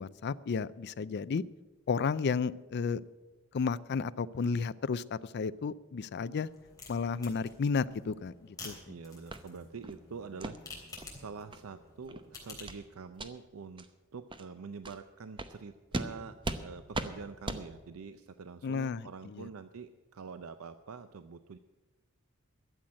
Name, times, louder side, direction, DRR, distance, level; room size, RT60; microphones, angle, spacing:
voice 1, 0.0-1.4 1.9-3.0 3.5-6.5 6.9-8.8 18.6-19.5, left 5 dB, 50° left, 16 dB, 0.4 m, -32 dB
sound 1, 6.4-12.9, left 3 dB, 15° left, 3.6 m, -50 dB
voice 2, 8.9-10.6 11.1-13.9 14.1-16.3 16.6-21.6, right 5 dB, 85° right, 10 dB, 0.5 m, -45 dB
sound 2, 9.3-9.4 9.8-10.0 10.4-10.6 11.0-11.1 11.5-11.6 12.0-12.2 12.7-12.8 13.1-13.3 13.8-13.9 14.3-14.4 14.8-15.0 15.4-15.5 15.9-16.1 16.4-16.6 16.9-17.1 17.4-17.6, right 2 dB, 25° right, 0.8 m, -37 dB
12.5 x 7.8 x 8.7 m, 1.2 s
head